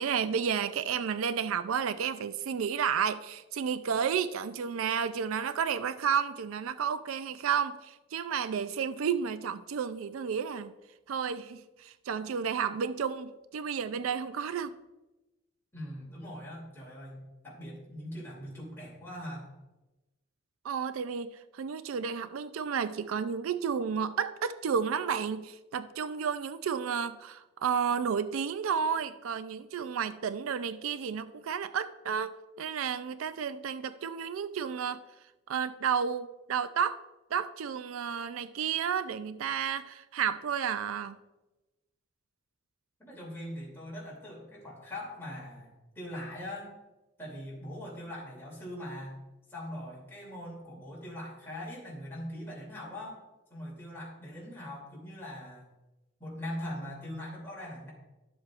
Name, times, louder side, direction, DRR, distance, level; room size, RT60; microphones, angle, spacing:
voice 1, 0.0-10.7 11.1-14.8 20.6-35.0 35.5-37.0 37.3-41.2, right 7 dB, 85° right, 0.4 m, -32 dB
voice 2, 15.7-19.5 43.0-46.7 47.2-49.2 49.5-53.2 53.5-55.7 56.2-57.9, left 1 dB, 10° left, 2.8 m, -41 dB
12.0 x 7.4 x 2.5 m
head